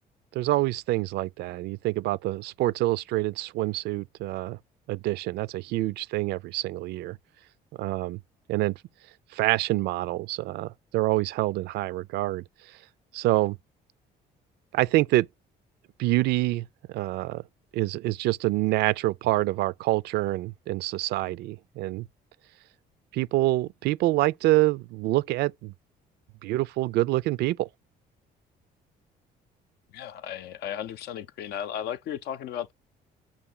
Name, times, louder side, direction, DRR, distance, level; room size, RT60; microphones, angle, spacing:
voice 1, 0.3-4.6 4.9-7.2 7.8-8.2 8.5-8.8 9.3-12.8 13.1-13.6 14.7-15.3 16.0-17.4 17.7-22.1 23.1-25.7 26.4-27.7, right 18 dB, 75° right, 0.4 m, -26 dB
voice 2, 29.9-32.7, left 10 dB, 70° left, 0.5 m, -35 dB
7.0 x 2.6 x 5.4 m
cardioid pair, 110°, 17 cm